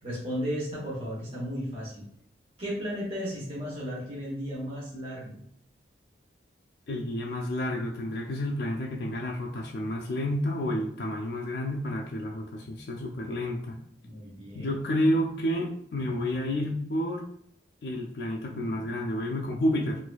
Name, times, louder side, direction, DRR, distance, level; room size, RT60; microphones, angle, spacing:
voice 1, 0.0-2.0 2.6-5.4 14.0-14.7, equal, 30° right, -6 dB, 1.0 m, -34 dB
voice 2, 6.9-13.8 14.5-17.2 17.8-20.0, left 1 dB, 60° left, -1 dB, 0.4 m, -30 dB
4.1 x 2.6 x 2.3 m, 0.67 s
head